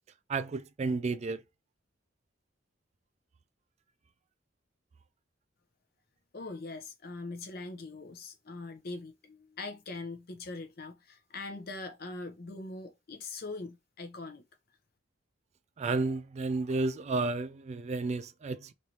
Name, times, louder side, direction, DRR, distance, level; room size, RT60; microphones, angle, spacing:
voice 1, 0.3-1.4 15.8-18.7, right 3 dB, 35° right, 0.3 m, -32 dB
voice 2, 6.3-14.4, left 3 dB, 55° left, 0.8 m, -42 dB
3.2 x 2.6 x 2.8 m
head